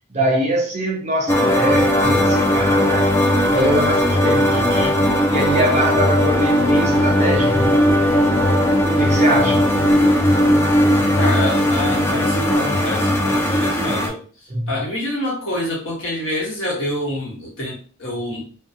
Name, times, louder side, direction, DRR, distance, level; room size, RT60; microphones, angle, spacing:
voice 1, 0.1-3.1 3.5-4.5 5.3-7.7 9.0-9.7 14.5-14.7, right 1 dB, 35° right, 0.6 m, -22 dB
sound 1, 1.3-14.1, left 1 dB, 15° left, 0.3 m, -17 dB
sound 2, 4.1-4.8 5.2-5.9 6.3-7.0 7.4-8.2 8.5-9.2 9.6-10.3 10.8-11.6 12.1-12.8 13.3-14.1, right 1 dB, 30° left, 0.9 m, -32 dB
voice 2, 4.5-5.0 11.2-18.5, left 1 dB, 65° left, 1.1 m, -27 dB
2.6 x 2.2 x 2.6 m
head